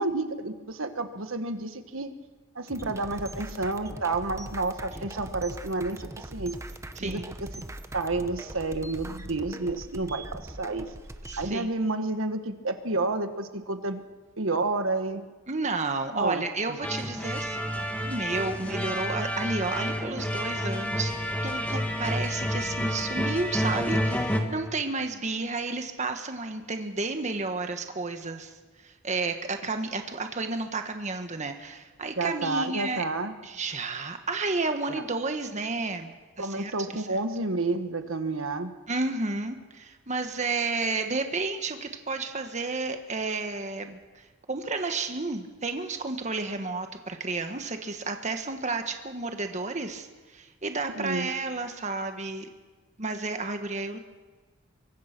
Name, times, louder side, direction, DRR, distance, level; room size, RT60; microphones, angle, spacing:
voice 1, 0.0-2.1 2.5-6.5 7.0-7.2 7.6-7.7 7.9-10.9 11.4-14.0 14.4-15.2 16.1-16.4 32.2-33.3 34.9-35.0 36.4-38.7 50.9-51.3, right 2 dB, 75° right, 8 dB, 1.4 m, -30 dB
sound 1, 2.7-11.6, right 1 dB, 15° right, 0.9 m, -41 dB
voice 2, 7.0-7.3 11.3-11.7 15.5-21.1 21.4-33.0 33.4-37.2 38.9-52.5 53.0-54.0, right 3 dB, 35° right, 6 dB, 1.5 m, -32 dB
sound 2, 16.8-24.4, equal, 10° left, 1.8 m, -29 dB
24.5 x 21.0 x 6.1 m, 1.3 s
head